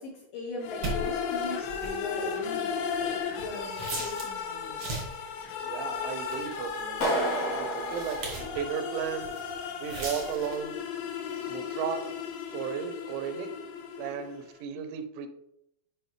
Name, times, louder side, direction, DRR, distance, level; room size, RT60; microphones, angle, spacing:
voice 1, 0.0-4.8, left 3 dB, 75° left, -2 dB, 2.1 m, -40 dB
sound 1, 0.6-14.5, left 6 dB, 90° left, 2.9 m, -35 dB
sound 2, 0.8-4.4 4.7-5.3 5.9-8.7 9.0-9.5 9.8-10.7, right 2 dB, 65° right, 1.0 m, -38 dB
voice 2, 5.6-7.0 7.6-9.3 9.8-10.8 11.5-12.1 12.5-13.5 14.0-15.3, right 8 dB, 85° right, 9 dB, 2.9 m, -35 dB
Clapping, 7.0-9.1, right 1 dB, 50° left, 2.4 m, -31 dB
7.7 x 5.2 x 3.2 m, 0.81 s
omnidirectional pair, 5.0 m